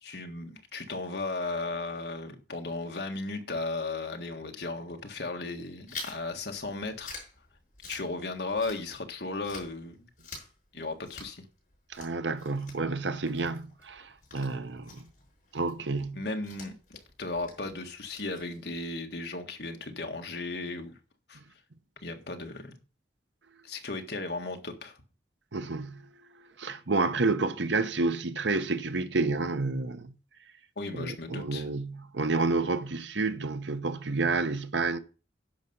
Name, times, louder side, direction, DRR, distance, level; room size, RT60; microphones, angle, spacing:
voice 1, 0.0-7.2 7.9-10.1 10.7-11.4 16.1-21.0 21.3-21.4 22.0-22.8 23.6-25.0 30.8-31.7, left 3 dB, 65° left, 1.6 m, -36 dB
Chewing mastication, 5.9-9.1 9.4-18.9, left 4 dB, 45° left, 5.9 m, -48 dB
voice 2, 11.9-15.0 15.5-16.2 25.5-26.1 26.6-30.1 30.9-35.0, right 3 dB, 90° right, 1.0 m, -30 dB
10.5 x 6.5 x 5.5 m
head